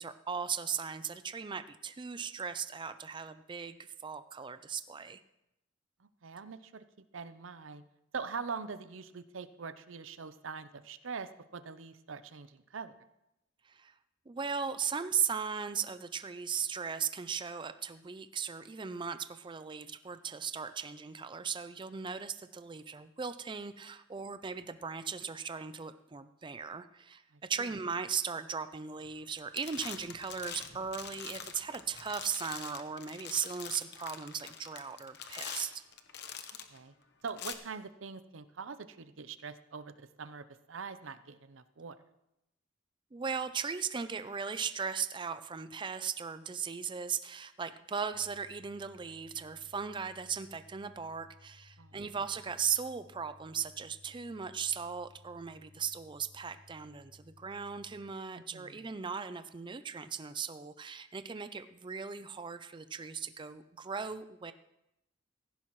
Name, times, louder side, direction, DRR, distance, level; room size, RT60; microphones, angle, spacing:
voice 1, 0.0-5.2 13.7-13.9 14.3-35.8 43.1-64.5, right 6 dB, 25° right, 11 dB, 0.4 m, -37 dB
voice 2, 6.0-6.8 7.1-7.8 8.1-12.9 27.3-27.7 36.7-36.9 37.2-42.0 51.8-52.2 58.4-58.8, right 5 dB, 85° right, 12 dB, 0.7 m, -43 dB
sound 1, 29.0-29.3 29.5-36.8 37.3-37.5, left 8 dB, 60° left, 1.0 m, -44 dB
sound 2, 48.1-58.1, left 2 dB, 80° left, 3.5 m, -60 dB
16.5 x 15.0 x 3.1 m, 0.88 s
head